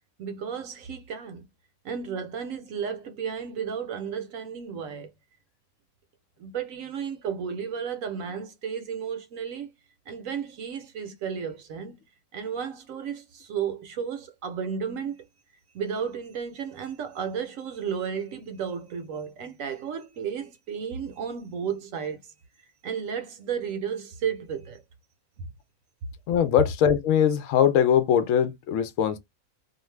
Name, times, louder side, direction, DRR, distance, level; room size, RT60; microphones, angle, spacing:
voice 1, 0.2-1.4 1.8-5.1 6.4-9.7 10.1-12.0 12.3-15.2 15.7-22.2 22.8-24.8, right 7 dB, 70° right, 0.9 m, -33 dB
voice 2, 26.3-29.2, left 9 dB, 70° left, 0.9 m, -21 dB
2.5 x 2.4 x 3.1 m
omnidirectional pair, 1.6 m